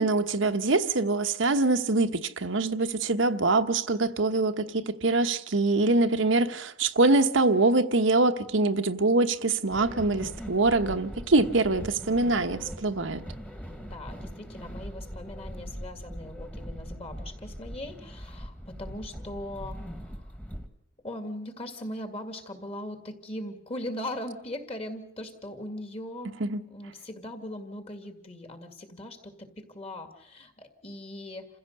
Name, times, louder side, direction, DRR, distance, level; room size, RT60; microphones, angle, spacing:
voice 1, 0.0-13.2 26.4-26.6, right 3 dB, 85° right, 1.1 m, -24 dB
sound 1, 9.7-20.7, equal, 5° left, 1.5 m, -41 dB
voice 2, 13.8-20.3 21.0-26.4 26.7-31.5, left 1 dB, 30° left, 2.2 m, -39 dB
28.5 x 15.5 x 6.6 m
head